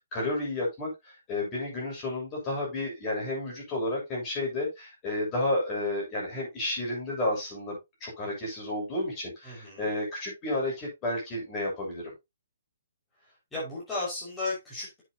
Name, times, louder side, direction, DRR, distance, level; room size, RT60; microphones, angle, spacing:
voice 1, 0.1-12.1, left 1 dB, 25° left, -3 dB, 7.3 m, -31 dB
voice 2, 9.4-9.8 13.5-15.0, left 2 dB, 10° left, -8 dB, 6.0 m, -34 dB
10.5 x 8.0 x 3.0 m, 0.22 s
hypercardioid pair, 140°, 0 cm